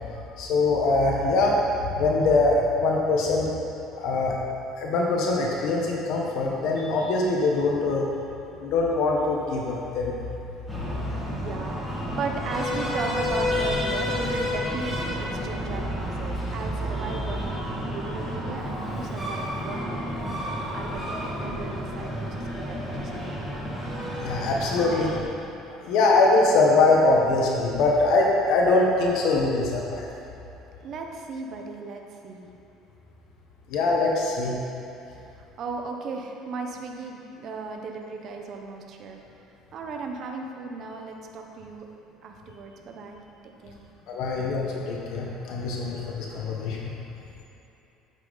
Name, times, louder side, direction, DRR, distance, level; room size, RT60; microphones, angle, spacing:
voice 1, 0.4-1.6 1.9-3.5 4.0-4.4 4.8-8.1 8.6-10.1 24.2-25.1 25.7-30.1 33.7-34.6 44.1-46.9, left 3 dB, 65° left, -1 dB, 1.2 m, -23 dB
Breathing, 10.7-25.2, equal, 5° left, 2.1 m, -30 dB
voice 2, 11.3-11.9 12.2-23.3 30.8-32.5 35.3-39.2 39.7-41.8 42.2-43.2 43.6-43.8, right 4 dB, 45° right, 2 dB, 1.0 m, -36 dB
9.2 x 8.3 x 4.1 m, 2.9 s
cardioid pair, 135°, 0 cm